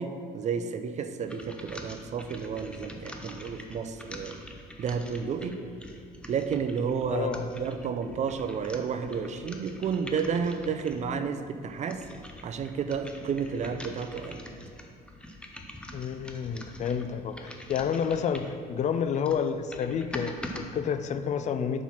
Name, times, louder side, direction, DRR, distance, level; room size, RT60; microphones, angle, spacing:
voice 1, 0.0-4.4 4.8-5.6 6.3-12.0 12.4-14.4, right 6 dB, 45° right, 9 dB, 0.5 m, -31 dB
sound 1, 1.3-11.1 11.7-18.6 19.1-20.6, left 1 dB, 5° left, 0.6 m, -45 dB
voice 2, 7.1-7.4 15.9-21.8, left 7 dB, 45° left, 11 dB, 0.4 m, -30 dB
5.6 x 4.6 x 5.8 m, 2.3 s
cardioid pair, 110°, 17 cm